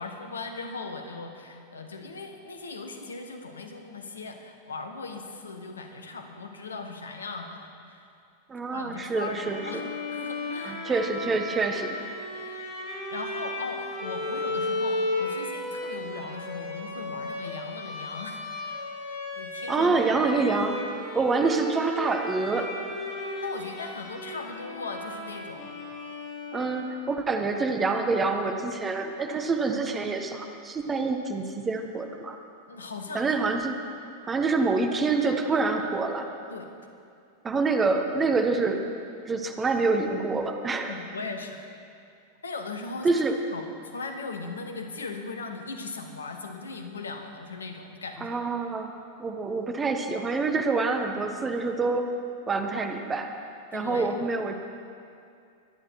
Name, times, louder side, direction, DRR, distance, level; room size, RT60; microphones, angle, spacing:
voice 1, 0.0-8.0 8.7-9.8 10.1-10.8 12.3-12.7 13.1-18.4 19.4-20.2 23.4-25.8 26.0-26.3 32.7-33.4 36.5-36.7 40.9-41.6 42.4-43.2 43.5-43.6 43.9-48.4 53.7-54.2, left 3 dB, 70° left, 5 dB, 1.3 m, -38 dB
voice 2, 8.5-9.8 10.6-12.0 19.7-22.7 26.5-32.4 33.1-33.8 34.2-36.3 37.4-38.8 39.3-41.0 43.0-43.4 48.2-48.9 49.2-52.1 52.5-53.3 53.7-54.5, right 3 dB, 20° right, 5 dB, 1.2 m, -26 dB
Bowed string instrument, 9.3-27.1, left 2 dB, 40° left, 3.7 m, -35 dB
23.0 x 10.0 x 4.6 m, 2.4 s
figure-of-eight pair, 90°, 0 cm